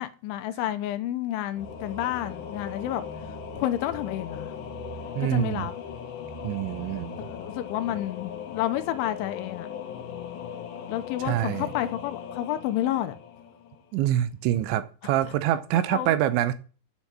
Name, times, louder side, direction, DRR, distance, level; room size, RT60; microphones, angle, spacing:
voice 1, 0.0-4.6 5.2-5.7 7.2-9.7 10.9-13.2 15.2-15.3 15.7-16.2, left 13 dB, 85° left, 3.4 m, -30 dB
Singing / Musical instrument, 1.5-14.1, left 6 dB, 60° left, 2.4 m, -39 dB
voice 2, 5.2-5.7 6.4-7.3 11.3-11.7 13.9-16.5, right 12 dB, 80° right, 3.1 m, -25 dB
9.5 x 7.0 x 8.8 m
omnidirectional pair, 5.3 m